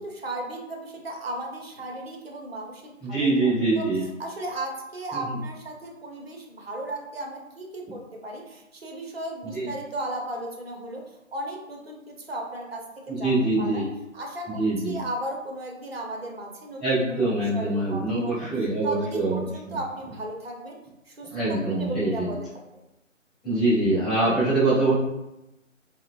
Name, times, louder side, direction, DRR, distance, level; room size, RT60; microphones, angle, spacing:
voice 1, 0.0-3.9 4.2-13.8 14.1-16.8 17.1-17.3 17.5-18.5 18.8-20.8 21.0-22.6, right 1 dB, 50° right, 0 dB, 0.8 m, -35 dB
voice 2, 3.0-4.0 5.3-5.4 9.4-9.7 13.1-13.9 14.6-15.0 16.8-19.8 21.3-22.3 23.4-24.9, right 2 dB, ahead, -12 dB, 0.4 m, -24 dB
4.4 x 2.1 x 2.3 m, 0.93 s
figure-of-eight pair, 155°, 39 cm